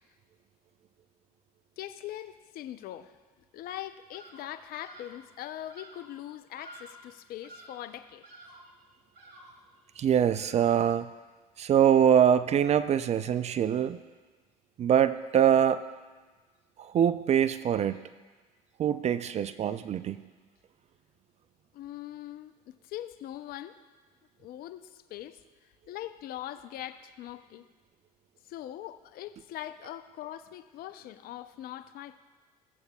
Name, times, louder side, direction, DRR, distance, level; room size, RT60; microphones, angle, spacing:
voice 1, 1.8-3.1 3.5-8.2 21.7-23.8 24.4-27.7 28.4-32.2, left 12 dB, 50° left, 12 dB, 0.5 m, -42 dB
Bird vocalization bird call bird song, 4.1-4.5 4.8-5.2 5.7-6.1 6.6-7.1 7.4-7.9 8.2-8.7 9.1-9.7 10.3-10.9, right 1 dB, 50° right, 1.9 m, -51 dB
voice 2, 10.0-11.1 11.6-14.0 14.8-15.8 16.8-18.0 18.8-20.2, right 9 dB, 35° right, 13 dB, 0.4 m, -24 dB
15.0 x 7.9 x 2.3 m, 1.3 s
hypercardioid pair, 70°, 20 cm